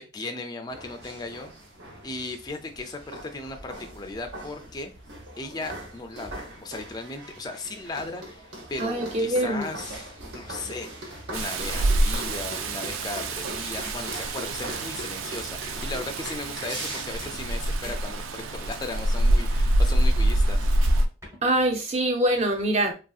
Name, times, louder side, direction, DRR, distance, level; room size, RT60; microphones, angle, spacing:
voice 1, 0.0-1.5 2.0-4.9 5.4-20.7, left 3 dB, 20° left, 0.3 m, -37 dB
sound 1, 0.7-17.0, right 1 dB, 60° right, 0.8 m, -41 dB
voice 2, 8.8-9.7 21.4-22.9, right 1 dB, 35° right, 0.5 m, -24 dB
Rain, 11.3-21.1, right 1 dB, 85° right, 0.4 m, -25 dB
sound 2, 13.8-14.0 14.3-14.4 14.7-14.9 16.7-17.5 17.8-18.0 18.3-18.9 20.7-21.5, equal, 15° right, 0.8 m, -42 dB
3.1 x 2.6 x 2.3 m
head